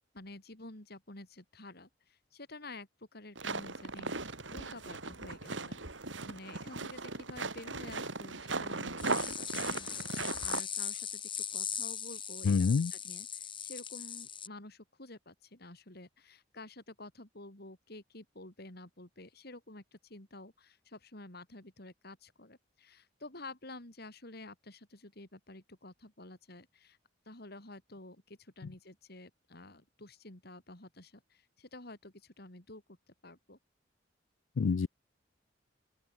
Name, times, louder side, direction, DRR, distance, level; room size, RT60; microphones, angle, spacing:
voice 1, 0.1-27.0 27.2-33.6, left 2 dB, 55° left, 4.4 m, -50 dB
sound 1, 3.3-10.6, right 3 dB, 80° right, 4.2 m, -38 dB
sound 2, 9.0-14.5, left 8 dB, 25° left, 2.0 m, -39 dB
voice 2, 12.4-12.9 34.6-34.9, left 5 dB, 90° left, 0.4 m, -27 dB
open air
head